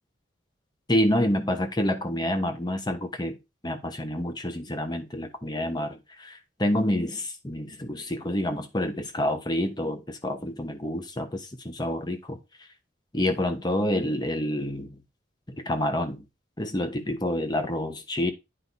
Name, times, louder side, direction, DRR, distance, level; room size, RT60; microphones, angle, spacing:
voice 1, 0.9-3.4 3.6-12.4 13.1-15.0 15.5-16.2 16.6-18.3, left 1 dB, 20° left, 1.1 m, -28 dB
9.2 x 4.7 x 4.2 m
head